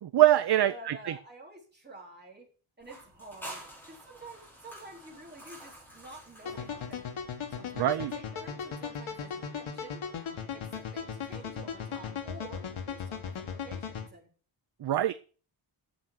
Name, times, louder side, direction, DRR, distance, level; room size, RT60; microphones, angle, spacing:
voice 1, 0.0-1.1 7.8-8.1 14.8-15.1, right 13 dB, 55° right, 0.6 m, -24 dB
voice 2, 0.7-2.5 2.8-10.0 10.5-14.3, right 2 dB, 20° right, 4.0 m, -49 dB
sound 1, 2.8-7.4, right 1 dB, 5° left, 4.4 m, -48 dB
sound 2, 6.5-14.1, left 7 dB, 75° left, 1.8 m, -37 dB
9.0 x 7.6 x 6.8 m
wide cardioid pair, 175°, 49 cm